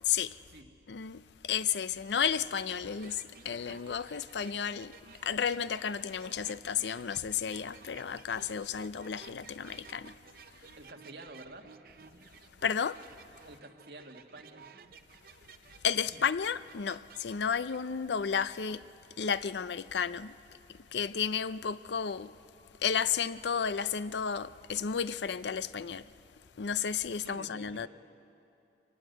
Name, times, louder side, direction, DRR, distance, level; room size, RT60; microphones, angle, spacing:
voice 1, 0.0-0.4 0.9-10.2 12.6-13.0 15.8-18.9 19.2-20.4 20.7-22.3 22.8-26.1 26.6-27.9, left 7 dB, 80° left, 0.5 m, -32 dB
sound 1, 2.6-17.8, right 5 dB, 55° right, 0.7 m, -55 dB
voice 2, 10.8-11.7 13.4-14.8 27.2-27.9, right 2 dB, 70° right, 1.8 m, -49 dB
24.5 x 19.0 x 7.9 m
head